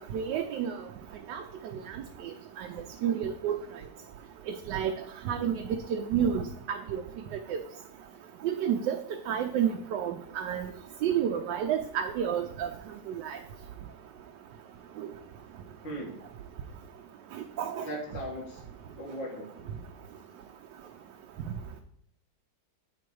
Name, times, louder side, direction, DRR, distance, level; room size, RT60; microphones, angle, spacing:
voice 1, 0.1-0.8 1.3-1.4 2.6-2.7 3.0-3.6 4.7-4.9 5.3-5.6 5.9-7.0 7.5-7.6 8.4-9.0 9.3-10.7 11.0-12.7 13.1-13.4 17.6-17.8, right 8 dB, 80° right, 4 dB, 1.2 m, -29 dB
voice 2, 15.8-16.2 17.8-18.6 19.0-19.7, equal, 85° left, -1 dB, 2.4 m, -38 dB
8.5 x 3.9 x 4.6 m, 0.66 s
omnidirectional pair, 1.9 m